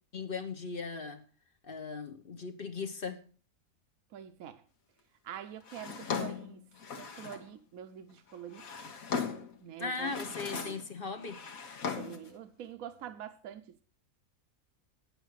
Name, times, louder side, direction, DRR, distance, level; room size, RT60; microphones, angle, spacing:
voice 1, 0.1-1.2 1.6-3.2 9.8-11.4, left 4 dB, 40° left, 1.1 m, -38 dB
voice 2, 4.1-4.6 5.2-6.6 7.0-8.7 9.6-10.2 10.5-10.8 11.9-13.8, right 10 dB, 75° right, 1.1 m, -45 dB
Drawer open or close, 5.7-7.5 8.3-9.6 10.0-10.9 11.2-12.3, left 6 dB, 75° left, 1.7 m, -38 dB
9.6 x 8.3 x 6.4 m
omnidirectional pair, 1.5 m